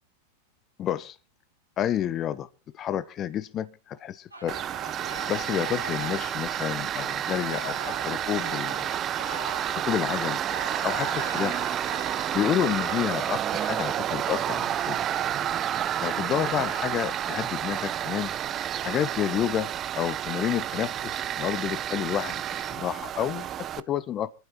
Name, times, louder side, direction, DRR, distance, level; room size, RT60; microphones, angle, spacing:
voice 1, 0.8-1.2 1.8-2.5 2.7-4.6 5.3-8.9 9.7-10.4 10.8-11.6 12.3-15.0 16.0-18.3 18.8-24.3, left 10 dB, 30° left, 0.7 m, -30 dB
sound 1, 4.3-13.0, right 1 dB, 85° right, 4.3 m, -41 dB
Tools, 4.5-23.8, right 10 dB, 30° right, 0.6 m, -30 dB
25.5 x 11.5 x 3.0 m
figure-of-eight pair, 90°, 0 cm